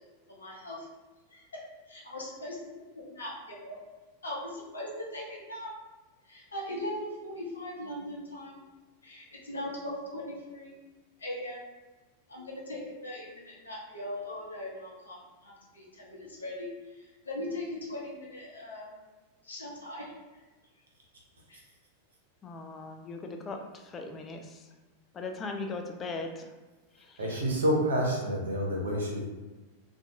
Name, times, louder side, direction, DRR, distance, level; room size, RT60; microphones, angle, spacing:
voice 1, 0.3-0.9 1.3-1.5 1.9-3.8 4.2-5.7 6.3-8.6 9.0-10.8 11.2-11.7 12.3-19.0 19.4-20.1 21.5-21.6, left 1 dB, 75° left, -4 dB, 0.7 m, -40 dB
voice 2, 22.4-24.7 25.1-26.5 26.9-27.4, left 3 dB, 25° left, 4 dB, 0.3 m, -39 dB
voice 3, 27.2-29.2, equal, 65° right, -1 dB, 0.6 m, -28 dB
2.5 x 2.2 x 2.7 m, 1.2 s
figure-of-eight pair, 90°, 0 cm